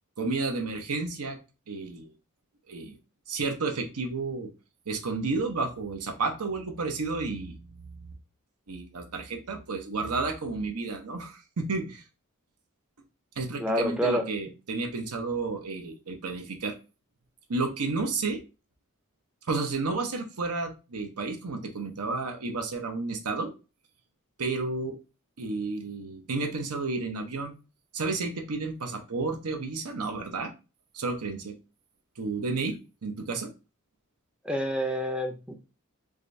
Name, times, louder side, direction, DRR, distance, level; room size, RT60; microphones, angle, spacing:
voice 1, 0.2-1.4 1.7-2.1 2.7-3.0 3.3-4.5 4.9-7.6 8.7-12.0 13.4-16.8 17.5-18.4 19.5-23.5 24.4-24.9 25.4-27.5 27.9-30.5 30.9-31.6 32.2-33.5, right 3 dB, 85° right, 0.8 m, -31 dB
voice 2, 13.6-14.3 34.4-35.5, equal, 5° right, 0.4 m, -28 dB
4.9 x 2.3 x 2.6 m
head